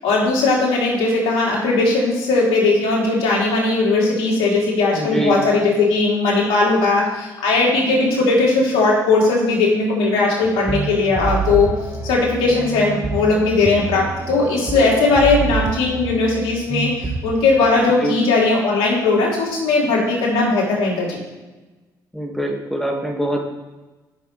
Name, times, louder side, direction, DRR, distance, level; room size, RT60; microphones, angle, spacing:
voice 1, 0.0-11.7 12.0-21.2, left 3 dB, 65° left, -4 dB, 3.4 m, -18 dB
voice 2, 4.9-5.4 18.0-18.2 22.1-23.4, right 1 dB, 5° left, 1 dB, 2.0 m, -23 dB
sound 1, 10.4-17.3, right 4 dB, 25° right, 1.1 m, -27 dB
14.5 x 6.5 x 3.4 m, 1.2 s
hypercardioid pair, 50°, 10 cm